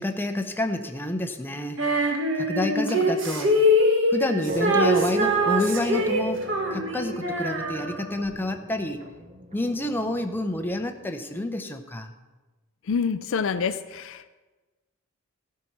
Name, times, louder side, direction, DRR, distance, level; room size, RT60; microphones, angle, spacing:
voice 1, 0.0-1.8 2.3-3.5 4.1-9.1 9.5-12.1, left 1 dB, 10° left, 5 dB, 0.7 m, -29 dB
Female singing, 1.8-8.3, equal, 60° right, 1.4 m, -24 dB
sound 1, 4.5-10.6, right 2 dB, 35° right, 1.1 m, -36 dB
voice 2, 12.9-14.3, left 6 dB, 65° left, 12 dB, 0.4 m, -27 dB
14.0 x 5.7 x 6.0 m, 1.2 s
head